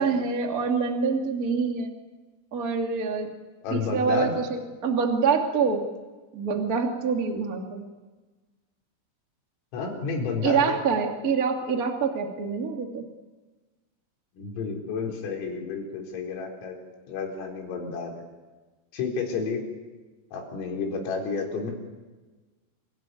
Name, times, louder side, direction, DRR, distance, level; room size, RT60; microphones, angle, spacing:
voice 1, 0.0-1.9 2.5-3.3 3.7-5.8 6.3-7.8 10.4-13.0, right 5 dB, 30° right, 3 dB, 1.7 m, -26 dB
voice 2, 3.6-4.3 9.7-10.8 14.3-16.8 17.1-18.2 18.9-19.6 20.3-21.7, left 4 dB, 80° left, 0 dB, 6.8 m, -31 dB
28.0 x 18.0 x 9.3 m, 1.3 s
omnidirectional pair, 5.8 m